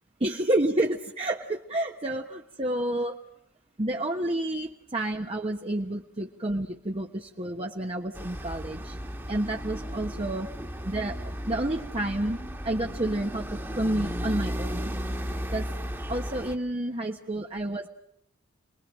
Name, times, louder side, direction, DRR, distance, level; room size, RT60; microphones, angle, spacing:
voice 1, 0.2-3.2 3.8-9.0 9.3-10.5 10.8-11.2 11.5-12.4 12.6-13.5 13.7-15.0 15.5-15.7 16.1-17.9, right 1 dB, 30° right, 1 dB, 1.3 m, -29 dB
sound 1, 8.1-16.6, equal, 10° right, 1.9 m, -35 dB
29.0 x 21.0 x 7.6 m, 0.73 s
head